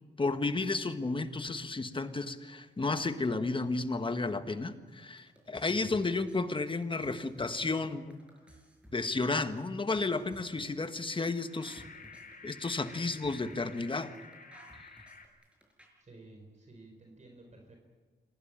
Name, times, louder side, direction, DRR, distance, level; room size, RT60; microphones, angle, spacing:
voice 1, 0.2-8.2 8.9-11.8 12.4-14.1, left 3 dB, 25° left, 10 dB, 1.5 m, -32 dB
sound 1, 4.9-15.9, right 1 dB, 5° right, 6.3 m, -57 dB
voice 2, 5.7-6.0 16.0-17.8, right 2 dB, 40° right, 2 dB, 4.3 m, -52 dB
sound 2, 11.3-15.3, left 4 dB, 45° left, 3.1 m, -52 dB
26.5 x 18.0 x 9.0 m, 1.5 s
wide cardioid pair, 125°, 19 cm